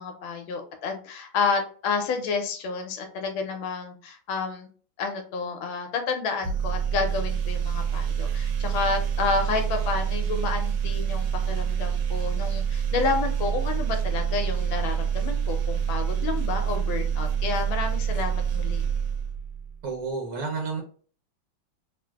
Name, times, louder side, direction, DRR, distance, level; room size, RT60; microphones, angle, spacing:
voice 1, 0.0-4.7 5.0-18.8, left 4 dB, 85° left, 5 dB, 1.4 m, -30 dB
sound 1, 6.4-19.8, right 8 dB, 80° right, 1.3 m, -27 dB
voice 2, 19.8-20.8, right 4 dB, 65° right, 1 dB, 0.9 m, -30 dB
3.2 x 2.5 x 2.3 m, 0.42 s
omnidirectional pair, 2.2 m